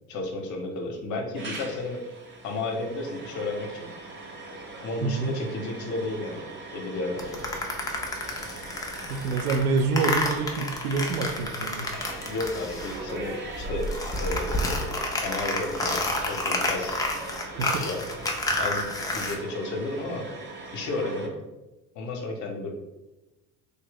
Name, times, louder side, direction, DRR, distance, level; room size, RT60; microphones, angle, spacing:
voice 1, 0.1-2.0 2.4-3.9 4.8-6.4 6.7-7.5 11.8-17.0 17.8-18.0 18.6-20.2 20.7-21.3 21.9-22.7, left 2 dB, 40° left, 2 dB, 0.8 m, -33 dB
sound 1, 1.3-21.3, right 2 dB, 25° right, 0.8 m, -41 dB
voice 2, 5.0-5.4 9.1-11.9 17.6-17.9, right 4 dB, 65° right, 6 dB, 0.6 m, -27 dB
sound 2, 7.2-13.2 13.5-19.4, left 2 dB, 10° left, 0.4 m, -30 dB
3.3 x 2.6 x 3.8 m, 1.0 s
figure-of-eight pair, 65°, 47 cm